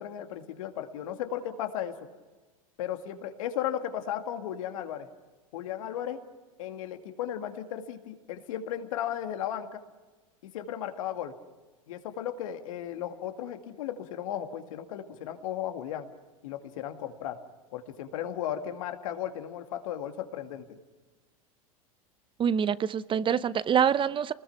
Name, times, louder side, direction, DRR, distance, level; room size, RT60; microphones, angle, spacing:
voice 1, 0.0-2.0 2.8-5.1 5.5-6.2 6.6-9.8 10.4-11.3 11.9-16.1 16.4-17.4 17.7-20.8, left 10 dB, 70° left, 2.2 m, -35 dB
voice 2, 22.4-24.3, right 8 dB, 30° right, 0.8 m, -25 dB
29.5 x 20.5 x 6.0 m
hypercardioid pair, 85°, 18 cm